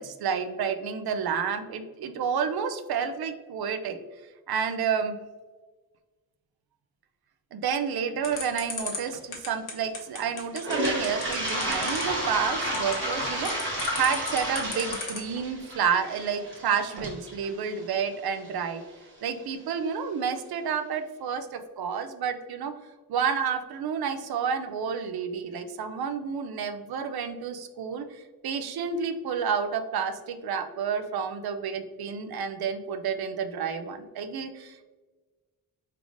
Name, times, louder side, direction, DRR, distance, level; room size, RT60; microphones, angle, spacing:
voice 1, 0.0-4.0 4.5-5.2 7.5-18.8 19.2-22.7 23.1-34.8, right 6 dB, 80° right, 8 dB, 0.5 m, -30 dB
sound 1, 8.2-15.4, left 4 dB, 60° left, 1.0 m, -35 dB
Toilet flush, 10.5-18.5, right 1 dB, 35° right, 1.5 m, -31 dB
4.9 x 3.3 x 2.5 m, 1.3 s
wide cardioid pair, 155°, 37 cm